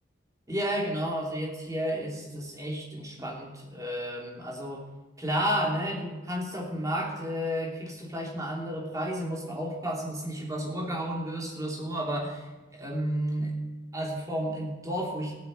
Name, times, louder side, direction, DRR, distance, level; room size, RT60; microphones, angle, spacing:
voice 1, 0.5-4.8 5.2-12.4 12.7-13.5 13.9-15.3, equal, 15° right, -2 dB, 3.1 m, -32 dB
15.5 x 8.4 x 8.8 m, 1.1 s
head